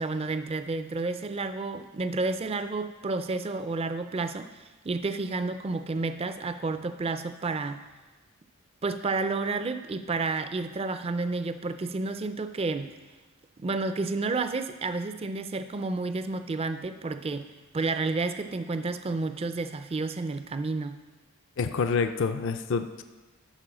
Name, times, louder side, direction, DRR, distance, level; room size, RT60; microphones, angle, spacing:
voice 1, 0.0-7.8 8.8-12.9 13.6-17.5 17.7-21.0, right 3 dB, 25° right, 10 dB, 0.4 m, -30 dB
voice 2, 21.6-23.0, left 5 dB, 55° left, 9 dB, 0.4 m, -27 dB
11.5 x 4.6 x 6.2 m, 1.2 s
head